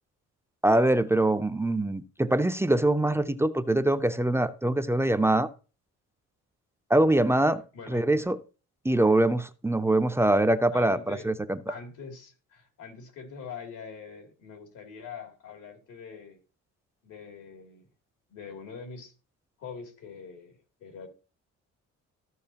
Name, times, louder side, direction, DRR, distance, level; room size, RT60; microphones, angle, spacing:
voice 1, 0.6-5.5 6.9-7.6 7.9-8.4 8.8-11.6, right 1 dB, 10° right, 0.5 m, -23 dB
voice 2, 7.7-8.1 10.7-11.3 11.7-16.4 17.0-17.9 18.3-19.1 19.6-21.1, left 5 dB, 85° left, 2.7 m, -44 dB
14.0 x 6.3 x 2.8 m
cardioid pair, 110°, 31 cm